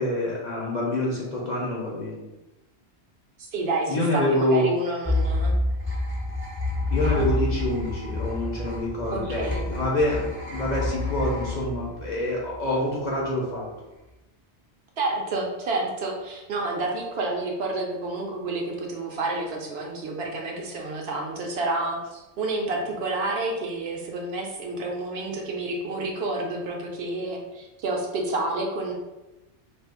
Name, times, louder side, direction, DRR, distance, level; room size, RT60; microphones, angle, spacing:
voice 1, 0.0-2.2 3.9-4.7 6.9-13.7, left 1 dB, 50° left, -4 dB, 0.6 m, -26 dB
voice 2, 3.4-5.6 7.2-7.3 9.1-9.6 15.0-28.9, right 2 dB, 70° right, 0 dB, 0.8 m, -29 dB
sound 1, 5.0-12.6, left 2 dB, 15° right, 0.6 m, -28 dB
2.6 x 2.4 x 3.6 m, 1.0 s
omnidirectional pair, 1.1 m